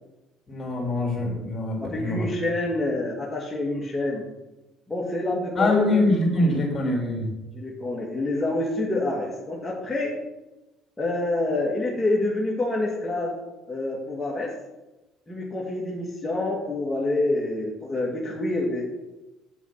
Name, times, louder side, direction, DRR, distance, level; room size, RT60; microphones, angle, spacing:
voice 1, 0.5-2.3 5.5-7.3, left 2 dB, 35° left, 0 dB, 3.5 m, -24 dB
voice 2, 1.8-4.2 4.9-6.1 7.5-10.1 11.0-13.3 13.7-14.5 15.3-18.8, left 2 dB, 15° left, -4 dB, 2.4 m, -27 dB
7.5 x 7.2 x 5.7 m, 1.0 s
supercardioid pair, 70°, 0 cm